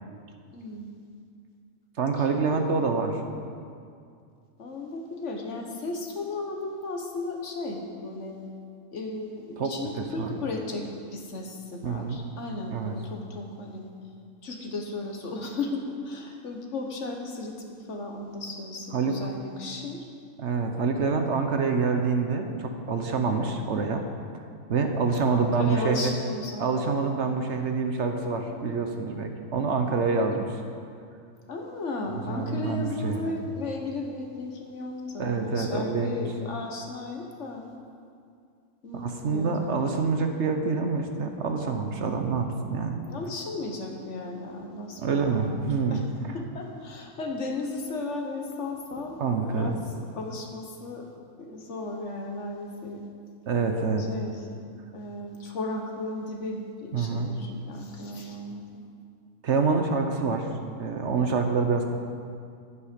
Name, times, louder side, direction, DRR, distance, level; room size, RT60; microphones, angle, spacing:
voice 1, 0.5-0.9 2.2-2.3 2.5-2.8 4.6-8.4 8.9-13.8 14.4-20.0 25.2-26.9 31.5-37.6 38.8-39.8 43.1-46.0 46.3-51.1 51.4-53.0 54.0-54.4 54.9-58.6, left 2 dB, 60° left, 2 dB, 1.5 m, -35 dB
voice 2, 2.0-3.2 9.6-10.3 11.8-12.2 12.7-13.0 18.9-19.2 20.4-24.0 24.7-26.2 26.6-30.5 32.3-33.3 35.2-36.2 38.9-43.0 45.0-46.3 49.2-49.8 53.5-54.1 56.9-57.3 59.4-60.5 60.8-61.9, right 4 dB, 60° right, 5 dB, 1.1 m, -26 dB
11.0 x 9.5 x 5.2 m, 2.3 s
omnidirectional pair, 1.5 m